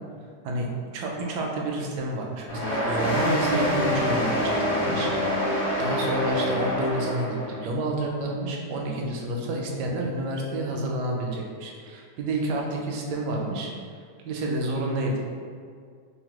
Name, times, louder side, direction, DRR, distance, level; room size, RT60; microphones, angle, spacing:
voice 1, 0.9-5.1 5.8-13.7 14.2-15.2, right 2 dB, 80° right, 0 dB, 1.2 m, -29 dB
sound 1, 2.5-7.6, left 1 dB, 65° left, 1.5 m, -26 dB
3.5 x 2.1 x 2.9 m, 2.1 s
omnidirectional pair, 1.9 m